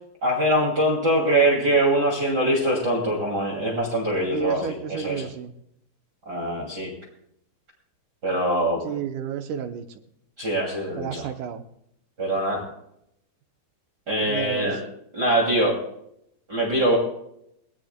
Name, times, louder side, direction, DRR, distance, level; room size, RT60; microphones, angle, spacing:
voice 1, 0.2-4.6 5.0-5.2 6.3-6.9 8.2-8.8 10.4-11.3 12.2-12.6 14.1-14.8 15.1-15.8 16.5-17.0, right 1 dB, 30° right, -1 dB, 2.6 m, -23 dB
voice 2, 4.3-5.5 8.8-9.8 10.9-11.6 14.3-14.7, right 8 dB, 75° right, 6 dB, 2.0 m, -31 dB
22.5 x 18.5 x 2.2 m, 0.75 s
omnidirectional pair, 4.3 m